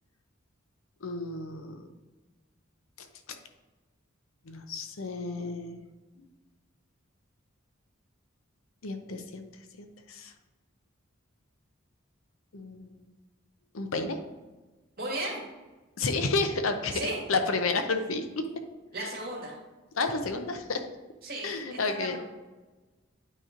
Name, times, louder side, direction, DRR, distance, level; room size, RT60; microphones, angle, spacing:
voice 1, 1.0-1.7 3.0-3.1 4.5-5.8 8.8-9.5 9.8-10.3 12.5-13.0 13.7-14.2 16.0-17.0 17.3-18.5 19.0-19.1 20.0-20.8 21.4-22.2, left 3 dB, 85° left, 6 dB, 0.7 m, -31 dB
voice 2, 15.0-15.4 16.9-17.2 18.9-19.6 21.2-22.2, right 2 dB, 50° right, -3 dB, 2.1 m, -35 dB
9.1 x 3.0 x 5.0 m, 1.2 s
head